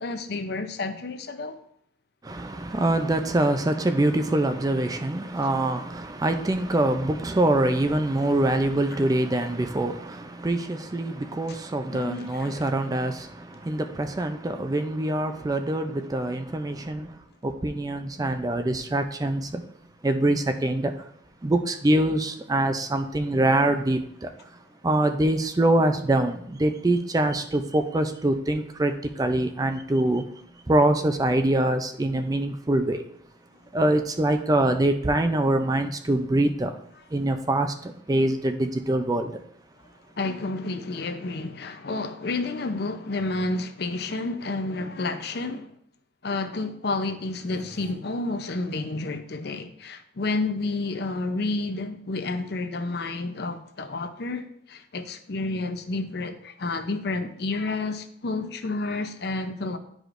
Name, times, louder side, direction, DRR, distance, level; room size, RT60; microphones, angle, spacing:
voice 1, 0.0-1.6 11.9-12.6 40.2-45.7 46.2-59.8, left 3 dB, 60° left, 0.6 m, -30 dB
voice 2, 2.2-17.2 17.4-19.6 20.0-20.9 21.4-24.3 24.8-30.3 30.7-33.0 33.7-36.8 37.1-39.3, right 1 dB, 20° right, 0.4 m, -24 dB
sound 1, 47.3-47.9, right 1 dB, 40° right, 1.9 m, -48 dB
11.0 x 4.9 x 2.5 m
head